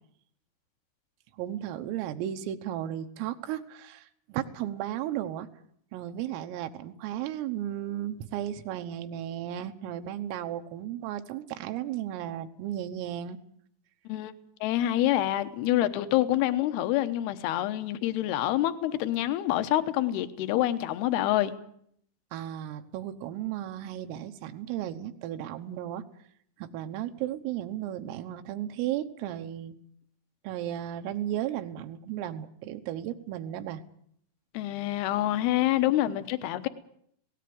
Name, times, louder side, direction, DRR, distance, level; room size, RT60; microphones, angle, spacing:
voice 1, 1.4-5.5 5.9-13.4 22.3-26.0 26.6-29.8 30.4-33.8, right 11 dB, 80° right, 3.7 m, -34 dB
voice 2, 14.6-21.5 34.5-36.7, left 14 dB, 75° left, 2.4 m, -26 dB
18.0 x 18.0 x 9.4 m
omnidirectional pair, 5.9 m